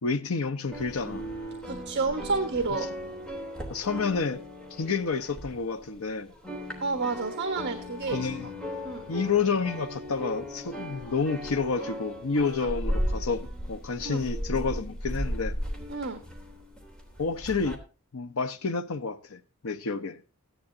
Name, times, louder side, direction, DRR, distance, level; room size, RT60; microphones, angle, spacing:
voice 1, 0.0-1.2 3.7-4.4 4.7-6.3 8.1-8.5 9.1-15.6 17.2-17.8 18.1-20.2, left 4 dB, 75° left, 0.8 m, -29 dB
sound 1, 0.7-6.1 6.3-17.8, equal, 5° left, 3.2 m, -36 dB
voice 2, 1.6-2.9 6.8-8.2 8.8-9.0 12.6-12.7 14.0-14.2 15.9-16.2, right 4 dB, 55° right, 1.5 m, -30 dB
16.0 x 11.0 x 2.7 m
head